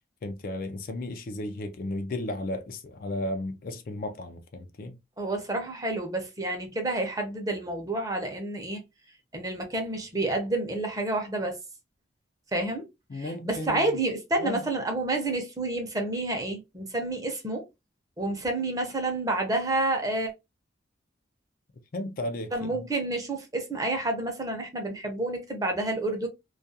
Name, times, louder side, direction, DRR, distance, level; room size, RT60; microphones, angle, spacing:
voice 1, 0.2-5.0 13.1-14.0 14.4-14.6 21.9-22.8, left 1 dB, 50° left, 0.4 m, -34 dB
voice 2, 5.2-8.8 9.3-11.6 12.5-12.8 13.2-17.6 18.2-20.3 22.5-26.3, right 2 dB, 20° right, 0.6 m, -29 dB
2.3 x 2.2 x 2.6 m
head